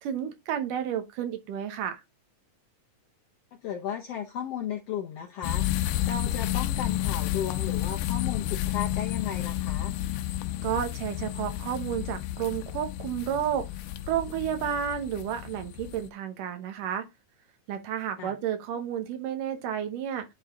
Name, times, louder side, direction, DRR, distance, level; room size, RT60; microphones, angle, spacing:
voice 1, 0.0-2.0 10.6-13.7 14.1-17.1 17.7-20.2, right 9 dB, 75° right, 2.6 m, -31 dB
voice 2, 3.5-9.9 18.2-18.4, left 9 dB, 75° left, 1.4 m, -35 dB
sound 1, 5.4-16.1, left 13 dB, 90° left, 2.2 m, -31 dB
10.5 x 3.9 x 3.5 m
omnidirectional pair, 3.8 m